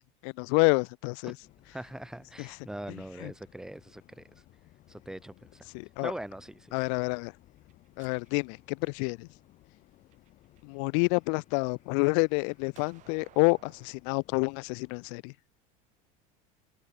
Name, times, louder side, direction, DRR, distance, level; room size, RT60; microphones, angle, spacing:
voice 1, 0.0-1.3 2.4-2.5 3.2-3.3 5.7-6.1 6.7-7.3 8.0-9.3 10.6-15.3, left 40 dB or more, 65° left, 0.4 m, -28 dB
voice 2, 1.2-4.4 4.9-5.7 6.0-6.9, right 1 dB, 5° right, 0.9 m, -42 dB
sound 1, 1.4-15.1, left 16 dB, 45° left, 3.8 m, -60 dB
sound 2, 7.6-9.3 9.9-10.8 11.2-13.9, right 15 dB, 45° right, 7.1 m, -61 dB
cardioid pair, 145°, 17 cm